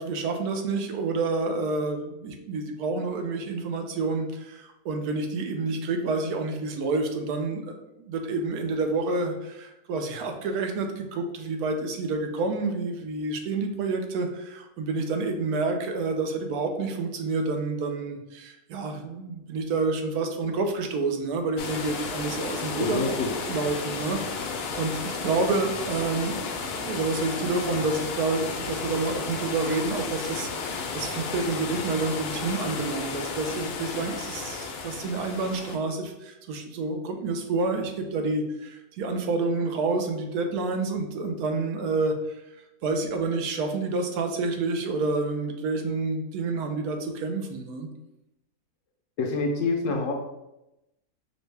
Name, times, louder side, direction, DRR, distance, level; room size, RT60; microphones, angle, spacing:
voice 1, 0.0-7.6 8.0-23.2 23.5-42.4 42.8-47.9, right 3 dB, 80° right, 4 dB, 1.1 m, -29 dB
sound 1, 21.6-35.8, left 4 dB, 90° left, 1.1 m, -33 dB
voice 2, 22.8-23.3 49.2-50.1, left 3 dB, 70° left, 2 dB, 0.8 m, -26 dB
5.2 x 2.2 x 3.2 m, 0.91 s
omnidirectional pair, 1.6 m